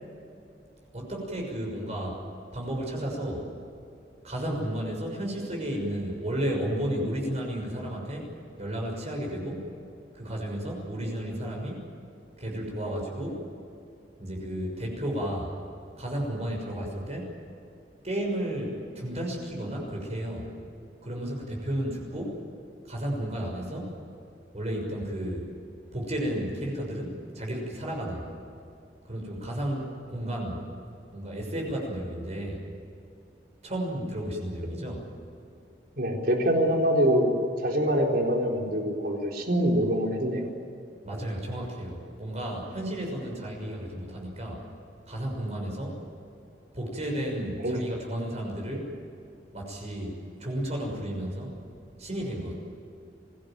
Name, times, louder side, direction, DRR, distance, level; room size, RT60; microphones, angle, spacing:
voice 1, 0.9-2.2 2.5-3.4 4.2-8.3 8.6-9.7 10.1-11.9 12.4-13.4 14.2-15.5 16.0-17.3 18.0-20.5 21.0-22.4 22.8-24.0 24.5-25.5 25.9-28.3 29.0-30.6 31.1-32.6 33.6-35.1 41.0-44.6 45.1-46.0 46.7-48.9 49.5-51.5 52.0-52.5, right 1 dB, 40° right, 0 dB, 6.3 m, -33 dB
voice 2, 36.0-37.3 37.6-40.5 47.6-47.8, equal, 60° right, 1 dB, 4.2 m, -24 dB
25.5 x 18.0 x 9.1 m, 2.7 s
head